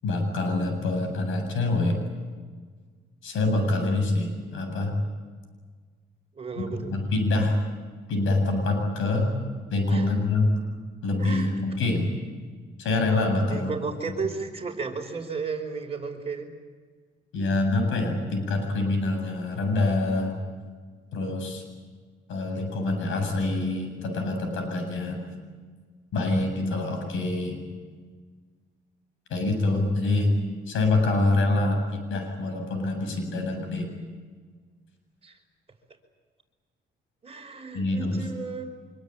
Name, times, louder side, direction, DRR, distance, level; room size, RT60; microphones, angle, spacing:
voice 1, 0.0-2.0 3.2-4.9 6.6-7.6 8.1-9.3 9.7-10.5 11.0-12.2 12.8-13.8 17.3-20.4 21.1-21.6 22.3-25.2 26.1-27.6 29.3-30.3 30.7-33.9 37.7-38.2, left 2 dB, 80° left, 5 dB, 7.8 m, -25 dB
voice 2, 6.3-6.9 9.9-10.2 11.2-11.6 13.5-16.5 35.2-35.4 37.2-38.7, right 5 dB, 30° right, 3 dB, 5.2 m, -33 dB
25.5 x 23.5 x 9.1 m, 1.5 s
cardioid pair, 90°, 20 cm